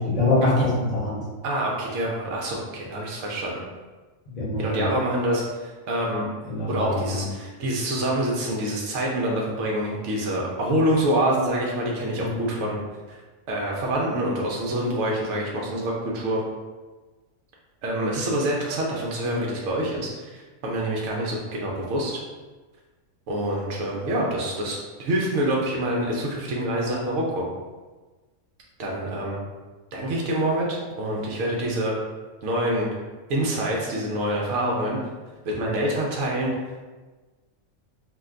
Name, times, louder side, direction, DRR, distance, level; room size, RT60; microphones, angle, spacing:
voice 1, 0.0-1.2 4.3-4.9 6.5-7.3 12.2-12.4, left 2 dB, 40° left, -9 dB, 0.8 m, -24 dB
voice 2, 1.4-3.6 4.6-6.3 6.7-12.8 13.1-13.2 13.5-16.4 17.8-22.2 23.3-27.4 28.8-29.4 29.9-31.9 32.4-32.9 33.3-35.0 35.4-36.5, right 1 dB, 65° right, -2 dB, 0.8 m, -26 dB
2.6 x 2.1 x 3.6 m, 1.3 s
omnidirectional pair, 1.5 m